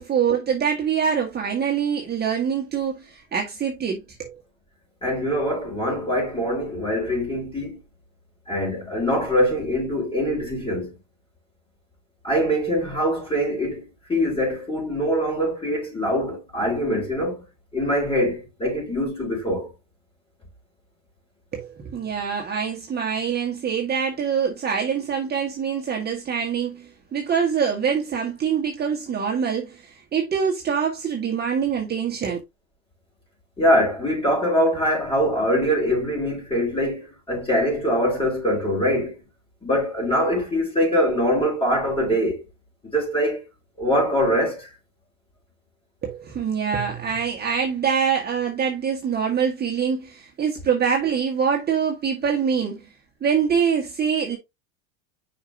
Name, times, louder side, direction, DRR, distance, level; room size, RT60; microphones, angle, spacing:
voice 1, 0.0-4.3 21.5-32.4 46.0-52.9 53.2-54.4, right 7 dB, 25° right, 1.6 m, -24 dB
voice 2, 5.0-7.8 8.5-10.9 12.2-17.4 17.7-19.7 33.6-39.2 39.6-42.4 42.9-43.4 43.8-44.7, equal, 15° left, 4.9 m, -23 dB
6.9 x 5.3 x 2.8 m
supercardioid pair, 115°, 37 cm